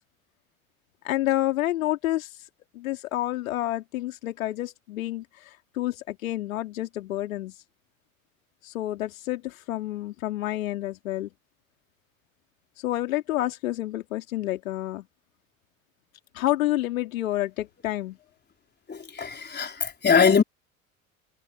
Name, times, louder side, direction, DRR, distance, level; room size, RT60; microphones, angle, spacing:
voice 1, 1.0-2.3 2.7-7.5 8.6-11.3 12.8-15.0 16.3-18.2, left 15 dB, 70° left, 3.0 m, -29 dB
voice 2, 18.9-20.4, left 6 dB, 25° left, 4.2 m, -22 dB
figure-of-eight pair, 65°, 42 cm